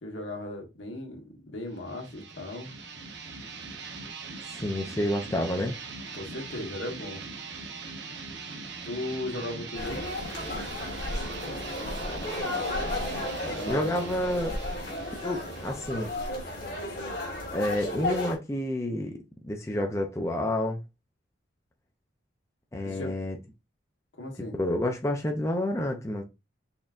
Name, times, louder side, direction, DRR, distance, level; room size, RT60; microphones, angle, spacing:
voice 1, 0.0-2.7 6.1-7.2 8.8-10.1 13.4-14.1 22.9-23.1 24.1-24.6, left 1 dB, 75° left, 1.3 m, -37 dB
sound 1, 1.7-17.1, right 4 dB, 60° right, 0.7 m, -41 dB
voice 2, 4.6-5.8 13.7-14.6 15.2-16.1 17.5-19.2 19.4-20.8 22.7-23.3 24.6-26.2, left 1 dB, 15° left, 0.5 m, -29 dB
sound 2, 9.7-18.4, left 1 dB, 50° left, 1.5 m, -33 dB
4.3 x 3.5 x 2.5 m
head